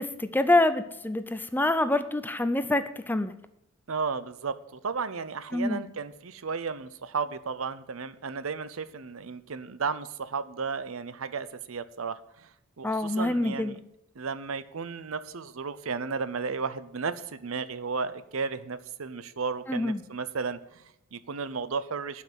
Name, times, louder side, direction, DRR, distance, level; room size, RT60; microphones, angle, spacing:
voice 1, 0.0-3.3 5.5-5.8 12.8-13.7 19.7-20.0, left 2 dB, 10° left, 11 dB, 0.5 m, -26 dB
voice 2, 3.9-13.8 14.1-22.2, right 5 dB, 75° right, 14 dB, 0.7 m, -34 dB
11.5 x 5.8 x 8.1 m, 0.81 s
head